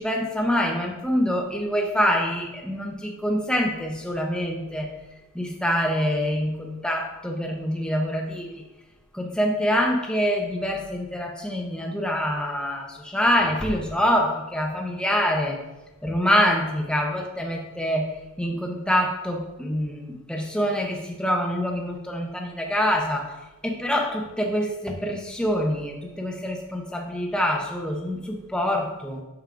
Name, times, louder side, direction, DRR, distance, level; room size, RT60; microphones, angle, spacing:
voice 1, 0.0-4.9 5.3-8.6 9.1-15.6 16.0-23.3 23.6-29.2, equal, 5° left, 1 dB, 0.6 m, -25 dB
8.9 x 6.2 x 2.5 m, 1.1 s
head